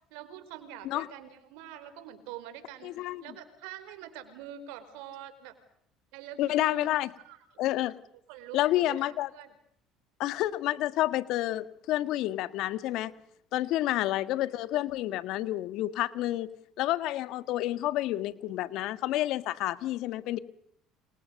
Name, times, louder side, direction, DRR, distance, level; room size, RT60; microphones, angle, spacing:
voice 1, 0.1-5.6 6.1-7.0 7.2-7.4 8.3-9.5 13.8-14.3, right 10 dB, 80° right, 11 dB, 5.1 m, -45 dB
voice 2, 2.8-3.2 6.4-7.1 7.6-8.0 8.5-9.3 10.2-13.1 13.5-16.5 16.8-20.4, left 15 dB, 70° left, 14 dB, 1.8 m, -29 dB
30.0 x 27.5 x 6.6 m, 0.72 s
supercardioid pair, 80°, 0 cm